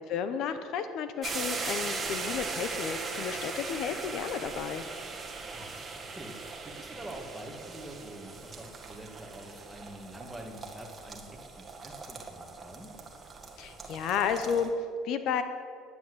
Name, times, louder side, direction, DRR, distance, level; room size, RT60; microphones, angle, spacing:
voice 1, 0.1-4.8 13.6-15.4, left 7 dB, 60° left, 10 dB, 0.8 m, -32 dB
sound 1, 1.2-14.7, right 4 dB, 25° right, 1.8 m, -39 dB
voice 2, 5.5-12.9, right 1 dB, 5° right, 1 dB, 2.1 m, -46 dB
11.0 x 9.9 x 8.0 m, 2.2 s
cardioid pair, 125°, 0 cm